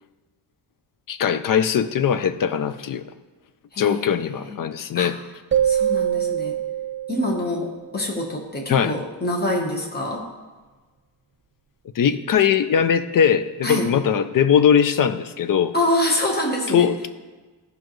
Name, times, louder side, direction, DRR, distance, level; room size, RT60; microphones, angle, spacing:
voice 1, 1.1-3.1 3.8-5.2 8.7-9.0 12.0-15.7 16.7-17.1, left 8 dB, 50° left, 12 dB, 0.5 m, -20 dB
voice 2, 3.7-4.6 4.9-5.1 5.6-6.6 7.1-10.3 13.6-13.9 15.7-16.9, left 1 dB, 20° left, 1 dB, 1.1 m, -25 dB
sound 1, 5.5-8.1, right 10 dB, 30° right, 0.3 m, -24 dB
14.0 x 5.2 x 3.1 m, 1.3 s
wide cardioid pair, 165°, 44 cm